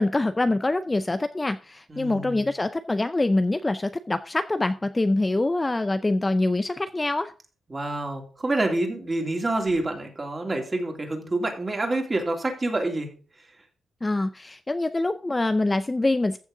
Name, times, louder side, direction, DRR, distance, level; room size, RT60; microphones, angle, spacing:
voice 1, 0.0-7.3 14.0-16.4, left 2 dB, 15° left, 11 dB, 0.4 m, -25 dB
voice 2, 1.9-2.5 7.7-13.1, right 2 dB, 25° right, 2 dB, 2.9 m, -27 dB
14.5 x 6.4 x 3.7 m, 0.39 s
cardioid pair, 115°, 0 cm